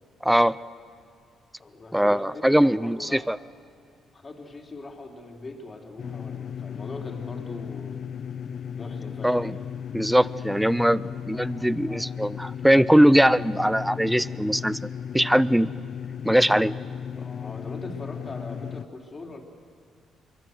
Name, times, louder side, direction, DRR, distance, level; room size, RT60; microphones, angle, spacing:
voice 1, 0.2-0.6 1.9-3.4 9.2-9.6 9.9-14.8 15.1-15.7 16.2-16.7, equal, 5° right, 18 dB, 0.5 m, -21 dB
voice 2, 1.6-3.3 4.1-8.0 8.7-9.6 11.3-12.1 12.7-13.6 14.3-14.4 15.2-15.3 17.1-19.4, left 2 dB, 30° left, 2 dB, 3.3 m, -42 dB
sound 1, 6.0-18.8, left 8 dB, 55° left, 0.6 m, -35 dB
26.0 x 23.0 x 7.9 m, 2.3 s
cardioid pair, 90°, 0 cm